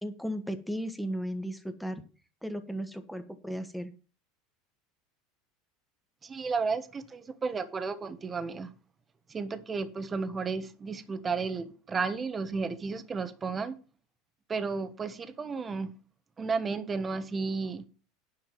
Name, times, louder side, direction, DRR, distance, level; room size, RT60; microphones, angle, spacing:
voice 1, 0.0-2.0 2.4-3.9, equal, ahead, 1.7 m, -35 dB
voice 2, 6.2-8.7 9.3-13.8 14.5-15.9 16.4-17.9, right 4 dB, 25° right, 1.3 m, -33 dB
10.5 x 5.6 x 7.2 m
hypercardioid pair, 85°, 0 cm